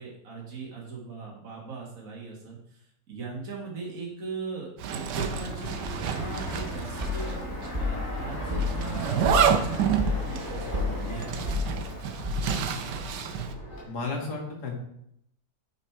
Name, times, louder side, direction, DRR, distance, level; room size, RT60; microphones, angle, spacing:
voice 1, 0.0-7.4 7.8-11.8, right 4 dB, 55° right, -4 dB, 2.2 m, -39 dB
Zipper (clothing), 4.8-7.4 7.6-7.7 8.6-13.5, right 7 dB, 80° right, 1.4 m, -29 dB
Fixed-wing aircraft airplane, 5.1-13.8, equal, 40° left, 3.2 m, -37 dB
sound 1, 7.0-12.8, left 4 dB, 25° right, 1.0 m, -32 dB
voice 2, 13.9-14.7, left 3 dB, 75° left, 1 dB, 2.4 m, -33 dB
8.9 x 6.4 x 4.5 m, 0.75 s
omnidirectional pair, 1.8 m